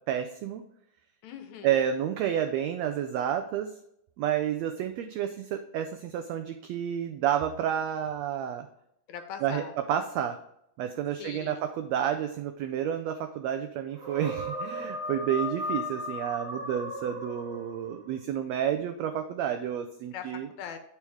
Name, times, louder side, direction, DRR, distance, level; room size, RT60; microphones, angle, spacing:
voice 1, 0.1-0.6 1.6-3.7 4.2-8.7 9.4-9.6 9.9-10.4 10.8-20.5, right 9 dB, 90° right, 7 dB, 1.5 m, -30 dB
voice 2, 1.2-1.9 9.1-9.7 11.2-11.7 20.1-20.8, left 8 dB, 75° left, 7 dB, 1.9 m, -41 dB
sound 1, 13.9-18.0, left 1 dB, 45° right, 4.0 m, -36 dB
8.2 x 4.9 x 3.3 m, 0.75 s
omnidirectional pair, 3.6 m